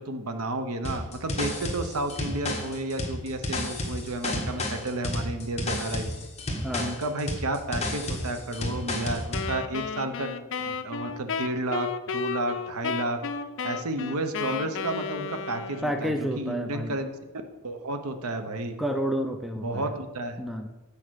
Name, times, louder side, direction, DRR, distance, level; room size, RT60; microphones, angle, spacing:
voice 1, 0.0-6.1 6.8-10.4 10.6-13.2 13.6-17.1 17.6-18.8 19.6-20.4, right 2 dB, 80° right, 7 dB, 0.9 m, -32 dB
sound 1, 0.8-9.5, left 1 dB, 30° left, 1.2 m, -31 dB
Wind instrument woodwind instrument, 9.3-16.2, left 6 dB, 55° left, 0.5 m, -33 dB
voice 2, 15.8-17.0 18.8-19.9 20.4-20.7, equal, ahead, 5 dB, 0.5 m, -30 dB
8.7 x 5.0 x 6.3 m, 1.2 s
head